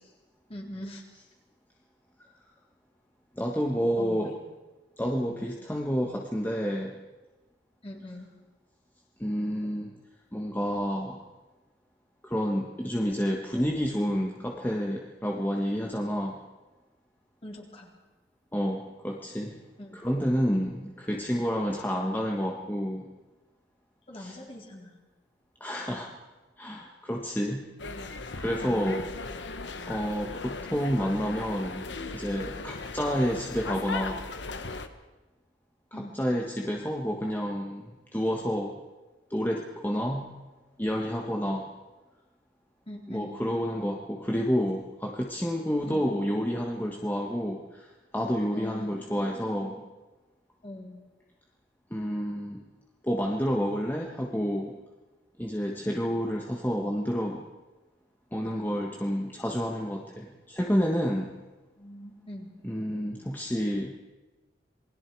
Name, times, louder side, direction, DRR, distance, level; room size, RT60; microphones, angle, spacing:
voice 1, 0.5-1.0 4.0-4.4 7.8-8.3 17.4-17.9 19.8-20.0 24.1-24.9 27.9-28.1 35.9-36.2 42.9-43.3 45.9-46.1 48.5-49.8 50.6-51.0 61.8-62.5, left 1 dB, 35° left, -1 dB, 4.1 m, -42 dB
voice 2, 3.4-4.3 5.0-7.0 9.2-9.9 10.3-11.2 12.2-16.4 18.5-19.6 19.9-23.1 24.2-24.4 25.6-26.1 26.6-27.7 28.4-29.0 29.9-34.2 35.9-38.8 39.3-40.3 40.8-41.7 43.1-49.8 51.9-52.6 53.0-54.8 55.4-57.5 58.3-61.3 62.6-63.9, equal, 10° left, 0 dB, 1.4 m, -29 dB
sound 1, 27.8-34.9, left 3 dB, 75° left, 1.3 m, -38 dB
28.0 x 20.5 x 4.7 m, 1.2 s
head